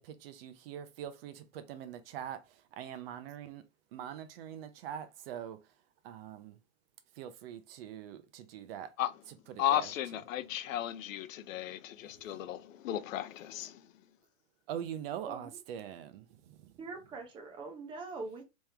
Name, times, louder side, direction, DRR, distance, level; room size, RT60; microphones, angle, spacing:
voice 1, 0.0-5.6 6.0-6.6 7.1-8.9 9.5-9.9 14.7-16.8, right 10 dB, 50° right, 0.7 m, -43 dB
voice 2, 9.6-13.9, left 12 dB, 85° left, 0.6 m, -35 dB
voice 3, 16.8-18.4, right 3 dB, 15° right, 0.6 m, -43 dB
3.4 x 3.1 x 3.5 m
supercardioid pair, 155°, 39 cm